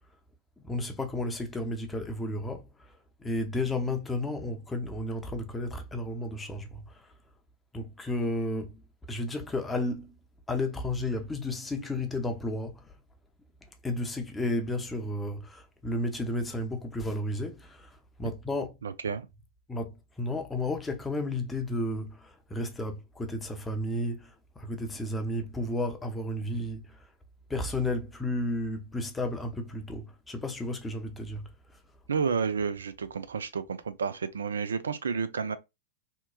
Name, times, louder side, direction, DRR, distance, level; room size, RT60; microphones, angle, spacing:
voice 1, 0.6-2.9 3.2-7.1 7.7-8.8 9.1-10.1 10.5-12.9 13.8-18.7 19.7-27.0 27.5-31.5, left 1 dB, 10° left, 0.6 m, -33 dB
voice 2, 18.8-19.3 32.1-35.6, right 5 dB, 80° right, 0.4 m, -31 dB
3.0 x 2.1 x 2.3 m
hypercardioid pair, 100°, 0 cm